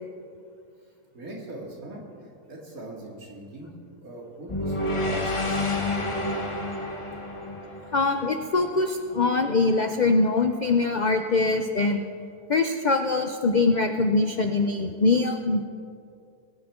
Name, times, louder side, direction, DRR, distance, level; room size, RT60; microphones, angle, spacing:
voice 1, 1.1-2.0 2.5-3.7 4.0-6.1 7.8-7.9, right 1 dB, 70° right, -2 dB, 2.7 m, -40 dB
sound 1, 4.5-8.7, left 1 dB, 25° left, 1.0 m, -29 dB
voice 2, 7.9-12.0 12.5-15.6, left 3 dB, 60° left, 6 dB, 0.4 m, -23 dB
20.0 x 9.7 x 3.7 m, 2.4 s
omnidirectional pair, 1.6 m